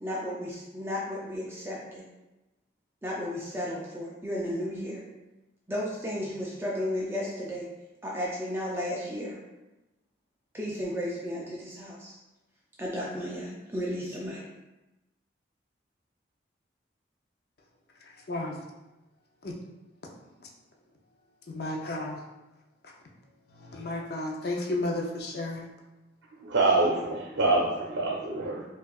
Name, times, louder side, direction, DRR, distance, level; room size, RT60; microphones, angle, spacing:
voice 1, 0.0-2.0 3.0-5.0 5.7-7.7 8.0-9.4 10.5-12.2 12.8-14.4, left 1 dB, 10° right, -4 dB, 0.4 m, -33 dB
voice 2, 21.5-22.2 23.6-25.7, left 2 dB, 55° left, -1 dB, 0.5 m, -32 dB
voice 3, 26.4-28.6, right 2 dB, 85° right, -4 dB, 0.6 m, -25 dB
4.5 x 2.4 x 2.3 m, 1.0 s
head